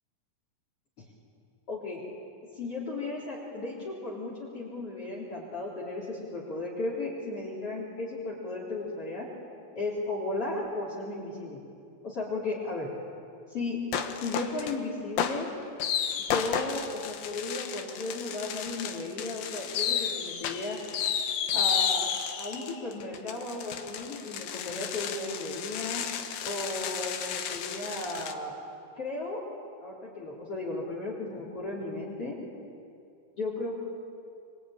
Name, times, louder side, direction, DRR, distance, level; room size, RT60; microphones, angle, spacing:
voice 1, 1.7-2.0 2.5-9.3 9.8-11.6 12.0-12.9 13.5-13.8 14.1-15.5 16.2-20.8 21.5-26.1 26.4-28.5 29.0-29.4 29.8-32.4 33.3-33.8, left 2 dB, 40° left, -3 dB, 4.3 m, -35 dB
sound 1, 13.9-14.8 15.2-28.3, left 8 dB, 85° left, 3.2 m, -32 dB
26.0 x 23.5 x 9.0 m, 2.5 s
omnidirectional pair, 4.1 m